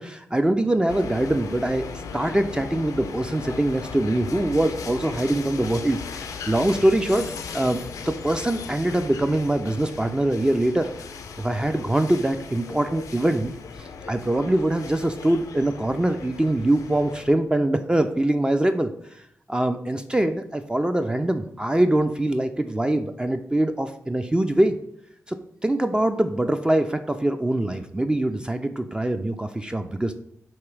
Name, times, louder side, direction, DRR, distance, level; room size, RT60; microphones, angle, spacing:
voice 1, 0.0-1.8 2.1-10.9 11.4-19.2 19.5-24.7 25.3-25.4 25.6-30.1, right 1 dB, 15° right, 7 dB, 0.3 m, -23 dB
sound 1, 0.9-17.3, left 5 dB, 90° left, 0.4 m, -37 dB
3.1 x 2.9 x 4.6 m, 0.70 s
cardioid pair, 50°, 6 cm